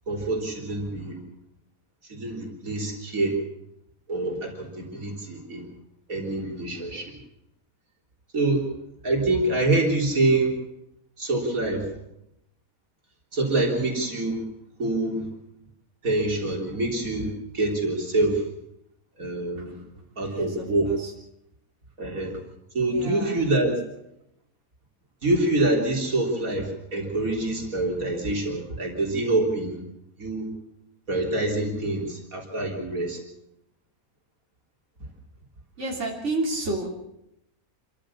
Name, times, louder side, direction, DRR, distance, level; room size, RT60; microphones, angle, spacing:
voice 1, 0.1-1.2 2.0-3.4 4.1-5.7 6.1-7.1 8.3-8.7 9.0-10.6 11.2-11.9 13.3-14.4 14.8-15.3 16.0-18.5 19.2-19.8 20.2-20.9 22.0-22.4 22.7-23.7 25.2-29.8 30.2-30.5 31.1-33.2, right 2 dB, 65° right, 0 dB, 4.1 m, -26 dB
voice 2, 20.2-21.1 22.9-23.5 35.8-36.9, right 2 dB, 50° right, -2 dB, 3.7 m, -31 dB
27.0 x 14.5 x 7.2 m, 0.82 s
omnidirectional pair, 1.5 m